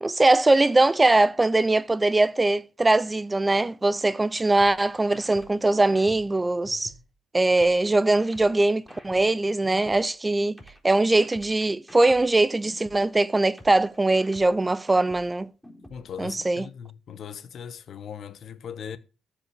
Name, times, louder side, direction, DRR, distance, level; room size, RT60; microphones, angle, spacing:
voice 1, 0.0-6.9 7.3-10.6 10.8-15.5 16.2-16.7, right 2 dB, 20° right, 0.5 m, -21 dB
sound 1, 4.6-7.1 7.6-10.1 10.6-13.1 13.6-16.1, equal, ahead, 4.3 m, -49 dB
voice 2, 15.9-19.0, left 7 dB, 60° left, 1.0 m, -39 dB
13.5 x 5.1 x 6.6 m
cardioid pair, 90°, 0 cm